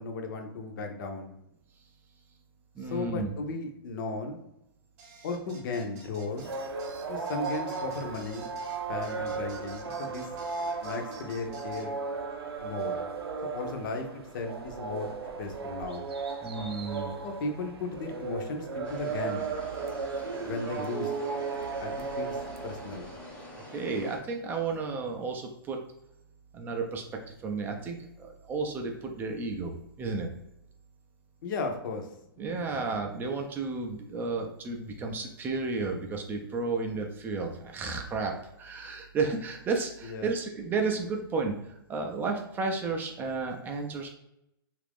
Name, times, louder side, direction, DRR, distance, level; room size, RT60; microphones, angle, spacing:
voice 1, 0.0-1.3 2.8-4.4 5.2-6.5 7.1-8.5 8.9-10.3 10.8-11.9 12.6-12.9 13.5-16.1 17.2-19.4 20.4-21.1 21.8-23.1 31.4-32.1 32.7-32.8 40.0-40.3, left 3 dB, 55° left, 4 dB, 0.6 m, -35 dB
voice 2, 2.8-3.3 16.4-17.1 23.7-25.8 26.5-27.0 27.4-29.7 30.0-30.3 32.4-44.1, right 4 dB, 15° right, 2 dB, 0.4 m, -32 dB
sound 1, 5.0-11.9, right 4 dB, 40° right, 0.8 m, -52 dB
sound 2, 6.3-23.3, right 4 dB, 90° right, 0.5 m, -36 dB
sound 3, 18.8-24.2, left 1 dB, 10° left, 0.7 m, -46 dB
2.9 x 2.5 x 3.4 m, 0.82 s
hypercardioid pair, 135°, 13 cm